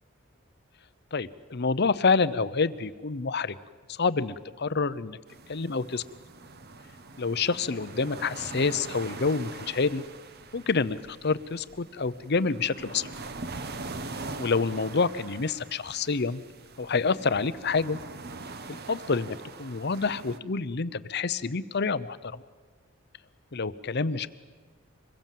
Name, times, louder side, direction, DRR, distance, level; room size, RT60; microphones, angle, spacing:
voice 1, 1.1-3.5 3.9-5.2 5.5-6.0 7.2-10.0 10.5-13.1 14.4-16.4 16.8-18.0 18.7-22.4 23.5-24.3, left 4 dB, 50° left, 15 dB, 0.8 m, -27 dB
sound 1, 5.3-20.4, right 3 dB, 50° right, 1.1 m, -42 dB
25.5 x 21.5 x 7.6 m, 1.4 s
head